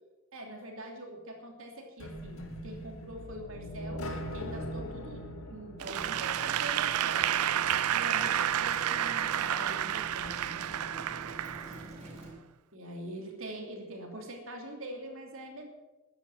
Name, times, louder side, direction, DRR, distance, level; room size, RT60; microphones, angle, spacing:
voice 1, 0.3-7.2 7.9-10.7 12.7-15.7, right 1 dB, 65° right, 2 dB, 2.9 m, -44 dB
sound 1, 2.0-6.9, equal, 75° left, 2.0 m, -41 dB
sound 2, 5.8-12.3, right 1 dB, 30° right, 5.2 m, -46 dB
Applause / Crowd, 5.8-12.1, right 10 dB, 85° right, 0.5 m, -30 dB
13.0 x 10.5 x 7.7 m, 1.1 s
head